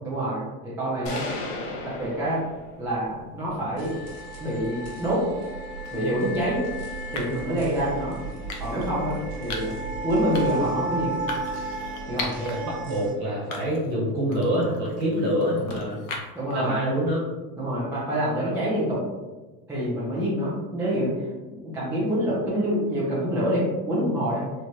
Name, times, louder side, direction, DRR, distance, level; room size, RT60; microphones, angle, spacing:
voice 1, 0.0-1.2 1.8-2.4 2.8-3.9 4.4-5.3 5.9-6.7 7.1-8.2 8.6-9.8 10.0-11.2 12.1-12.3 16.3-16.8 17.6-19.0 19.7-24.4, equal, 5° right, -9 dB, 0.4 m, -26 dB
sound 1, 1.1-3.0, left 2 dB, 70° left, 0.8 m, -35 dB
sound 2, 3.8-13.1, right 2 dB, 80° right, 1.1 m, -34 dB
sound 3, 5.8-6.1 7.1-7.5 8.5-8.9 9.5-9.8 10.3-10.7 11.3-12.5 13.0-13.1 13.5-14.0 14.3-16.5, left 3 dB, 40° left, 0.6 m, -37 dB
voice 2, 12.1-16.0 16.5-17.2 19.9-20.2, equal, 35° right, -5 dB, 1.5 m, -26 dB
3.1 x 2.1 x 2.6 m, 1.2 s
supercardioid pair, 120°, 47 cm